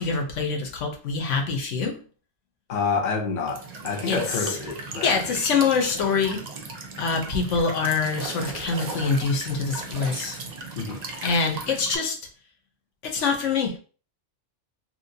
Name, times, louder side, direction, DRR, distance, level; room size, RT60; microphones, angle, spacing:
voice 1, 0.0-2.0 4.1-4.6 5.0-6.5 7.0-10.4 11.2-12.2 13.0-13.8, left 5 dB, 80° left, 1.1 m, -25 dB
voice 2, 2.7-5.2 10.8-11.0, left 4 dB, 45° left, 0.7 m, -28 dB
Walk footsteps / Chirp tweet / Stream, 3.5-12.0, right 3 dB, 50° right, 0.6 m, -37 dB
3.0 x 2.8 x 2.7 m
omnidirectional pair, 1.2 m